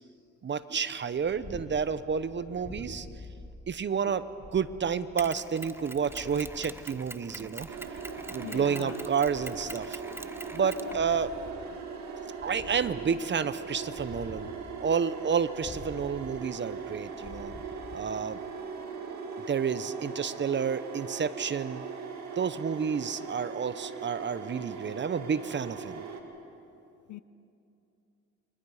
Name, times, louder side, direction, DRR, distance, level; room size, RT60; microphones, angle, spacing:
voice 1, 0.4-3.1 3.7-4.3 4.5-7.7 8.3-10.0 10.5-11.3 12.4-14.5 14.8-17.5 17.9-18.4 19.5-21.9 22.4-26.0, right 6 dB, 40° right, 0.9 m, -30 dB
Purr, 1.2-18.6, left 2 dB, 25° left, 2.4 m, -49 dB
Mechanisms, 5.2-11.5, right 2 dB, 10° right, 0.6 m, -44 dB
sound 1, 7.7-26.2, right 5 dB, 65° right, 2.4 m, -40 dB
voice 2, 8.4-8.9 10.6-11.3 27.1-27.2, left 13 dB, 75° left, 0.7 m, -41 dB
29.0 x 23.0 x 5.0 m
cardioid pair, 90°, 30 cm